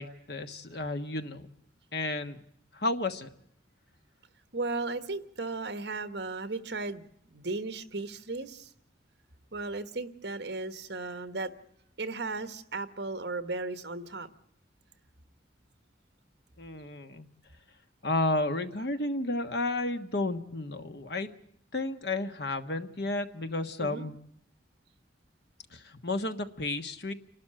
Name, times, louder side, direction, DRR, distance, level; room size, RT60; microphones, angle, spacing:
voice 1, 0.0-1.5 1.9-2.4 2.7-3.3 16.6-17.3 18.0-21.3 21.7-24.1 25.7-27.1, left 2 dB, 60° left, 8 dB, 1.4 m, -32 dB
voice 2, 4.5-8.7 9.5-11.5 12.0-14.3 23.8-24.1, right 3 dB, 60° right, 11 dB, 1.4 m, -35 dB
29.0 x 12.5 x 8.9 m, 0.73 s
head